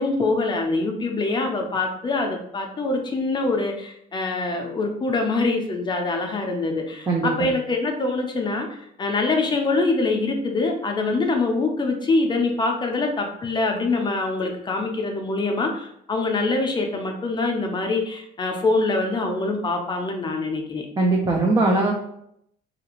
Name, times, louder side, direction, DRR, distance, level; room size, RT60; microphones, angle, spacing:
voice 1, 0.0-8.7 9.0-20.9, left 3 dB, 25° left, 2 dB, 0.5 m, -24 dB
voice 2, 7.1-7.5 21.0-21.9, right 2 dB, 25° right, -1 dB, 0.5 m, -20 dB
2.8 x 2.5 x 2.9 m, 0.74 s
cardioid pair, 110°, 17 cm